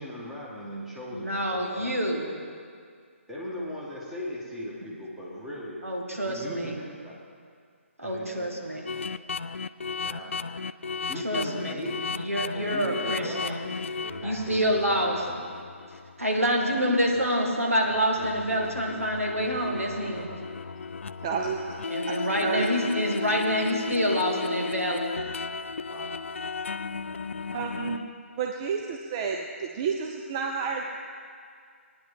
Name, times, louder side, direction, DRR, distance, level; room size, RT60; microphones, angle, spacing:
voice 1, 0.0-2.0 3.3-5.8 6.2-7.2 8.0-8.9 10.0-10.4 11.0-12.1 12.5-13.6 14.0-15.4 25.9-26.1, left 1 dB, 5° right, -6 dB, 1.7 m, -38 dB
voice 2, 1.1-2.4 5.8-6.8 8.0-9.0 11.2-13.7 14.2-15.2 16.2-20.3 21.9-25.1, equal, 85° right, 0 dB, 1.8 m, -27 dB
sound 1, 8.9-16.8 17.1-17.3 17.8-28.1, left 5 dB, 60° left, 0.3 m, -35 dB
voice 3, 21.2-21.8 22.1-22.7 27.5-28.1 28.4-30.8, right 5 dB, 25° right, 2 dB, 0.5 m, -30 dB
17.5 x 9.9 x 3.7 m, 2.2 s
figure-of-eight pair, 140°, 7 cm